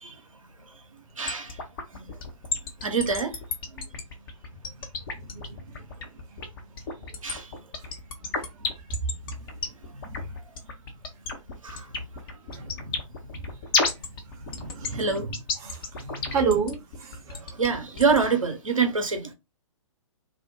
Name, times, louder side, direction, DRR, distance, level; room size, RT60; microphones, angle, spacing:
voice 1, 1.2-1.6 1.9-2.0 2.8-3.4 5.2-5.3 7.2-7.5 8.6-8.7 9.9-10.3 11.6-11.9 12.8-13.0 14.4-15.4 16.2-16.3 17.4-19.3, right 4 dB, 85° right, 0.6 m, -27 dB
sound 1, 1.3-18.3, left 4 dB, 45° left, 0.6 m, -31 dB
voice 2, 16.3-17.4, right 6 dB, 20° right, 0.6 m, -29 dB
2.4 x 2.0 x 2.6 m
figure-of-eight pair, 120°, 17 cm